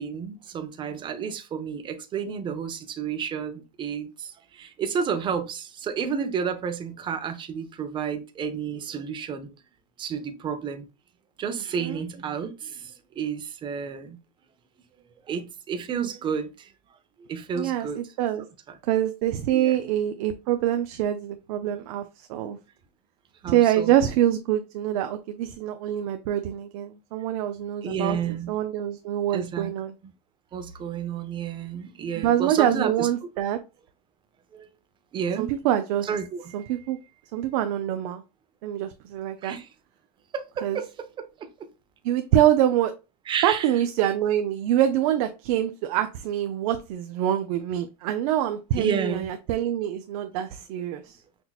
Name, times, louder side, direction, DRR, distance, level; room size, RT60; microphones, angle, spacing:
voice 1, 0.0-9.5 10.0-10.8 11.4-14.2 15.3-16.7 17.3-18.0 19.5-19.8 23.4-23.9 27.8-28.5 29.3-29.7 30.5-33.1 34.5-34.7 35.1-35.5 36.1-36.7 39.4-39.7 40.3-40.9 41.2-41.5 43.3-43.7 48.8-49.3, right 7 dB, 25° right, 0.7 m, -31 dB
voice 2, 17.5-18.5 18.8-22.6 23.5-29.9 32.1-33.6 35.4-36.1 36.5-37.0 37.3-38.2 38.6-39.6 40.6-40.8 42.0-42.9 43.4-51.2, right 11 dB, 60° right, 0.5 m, -25 dB
6.0 x 2.8 x 2.4 m
supercardioid pair, 140°, 21 cm